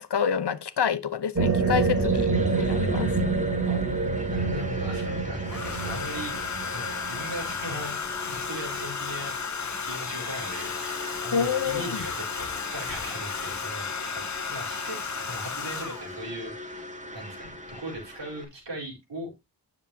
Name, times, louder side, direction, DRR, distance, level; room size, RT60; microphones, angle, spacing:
voice 1, 0.0-2.3 2.6-3.1 11.3-12.0, left 7 dB, 70° left, 0.9 m, -27 dB
sound 1, 1.3-8.6, right 4 dB, 35° right, 3.3 m, -27 dB
sound 2, 1.5-18.5, equal, 15° right, 2.2 m, -41 dB
voice 2, 2.7-6.4 6.7-9.4 9.8-14.2 14.5-16.8 17.1-19.3, equal, 90° right, 4.3 m, -39 dB
Domestic sounds home sounds, 3.9-4.0 5.4-16.2 17.4-17.7 18.0-18.3, left 6 dB, 45° left, 0.7 m, -34 dB
10.0 x 7.1 x 2.7 m
wide cardioid pair, 85°, 42 cm